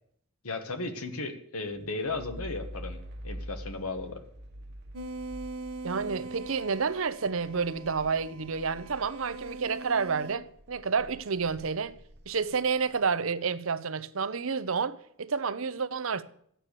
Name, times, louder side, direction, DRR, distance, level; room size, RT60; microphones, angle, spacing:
voice 1, 0.4-3.0 3.2-4.2, left 3 dB, 80° left, 1.4 m, -35 dB
sound 1, 1.7-9.9 10.3-12.9, equal, 50° right, 1.2 m, -46 dB
sound 2, 4.9-10.4, right 2 dB, 90° right, 1.1 m, -42 dB
voice 2, 5.8-11.9 12.3-16.2, right 5 dB, 65° right, 0.7 m, -30 dB
13.5 x 9.1 x 6.7 m
head